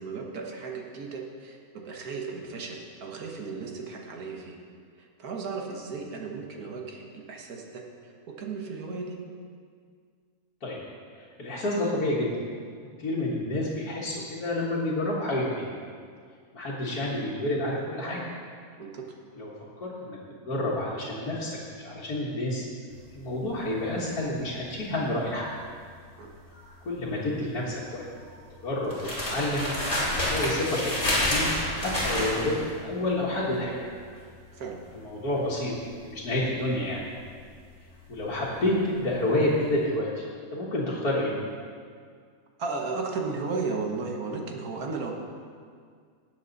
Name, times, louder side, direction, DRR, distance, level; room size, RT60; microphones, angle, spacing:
voice 1, 0.0-4.6 5.0-9.2 18.8-19.0 26.2-26.3 34.5-34.8 42.6-45.1, right 4 dB, 75° right, 1 dB, 1.8 m, -35 dB
voice 2, 11.2-12.3 13.0-15.6 16.5-18.3 19.4-19.5 19.8-22.7 23.2-25.5 26.8-28.1 28.6-29.0 29.3-29.7 30.1-33.9 34.9-35.7 36.0-37.0 38.1-40.2 40.5-41.3, left 1 dB, 80° left, -8 dB, 2.1 m, -29 dB
sound 1, 22.9-39.1 39.4-39.7, left 1 dB, 50° left, 3.5 m, -31 dB
18.0 x 7.1 x 4.0 m, 2.1 s
omnidirectional pair, 1.6 m